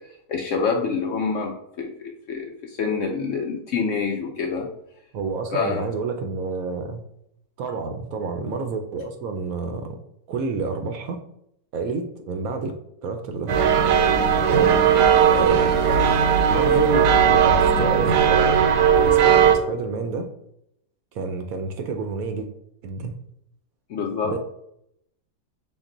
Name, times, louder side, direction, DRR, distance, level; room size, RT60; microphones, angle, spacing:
voice 1, 0.3-4.7 5.5-5.8 23.9-24.4, left 5 dB, 65° left, 0 dB, 0.8 m, -26 dB
voice 2, 5.1-7.0 7.6-10.0 10.3-11.2 11.7-12.7 13.0-13.5 14.5-14.8 15.3-15.7 16.5-18.6 18.9-20.3 21.1-22.5 22.8-23.1 24.2-24.4, right 4 dB, 70° right, 5 dB, 0.9 m, -29 dB
sound 1, 13.5-19.6, right 7 dB, 85° right, 1.2 m, -17 dB
5.8 x 2.1 x 3.8 m, 0.76 s
omnidirectional pair, 1.7 m